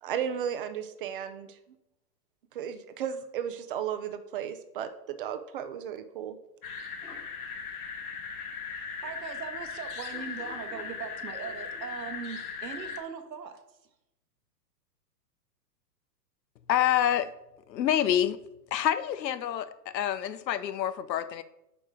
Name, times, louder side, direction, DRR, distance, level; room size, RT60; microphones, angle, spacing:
voice 1, 0.0-1.6 2.5-6.4, right 9 dB, 35° right, 9 dB, 0.5 m, -34 dB
sound 1, 6.6-13.0, left 5 dB, 60° left, 1.3 m, -38 dB
voice 2, 8.6-13.9, right 7 dB, 90° right, 6 dB, 1.2 m, -40 dB
voice 3, 16.7-17.3 17.7-18.4 18.7-21.4, left 11 dB, 85° left, 14 dB, 0.7 m, -27 dB
8.7 x 3.0 x 4.9 m, 0.87 s
hypercardioid pair, 145°, 49 cm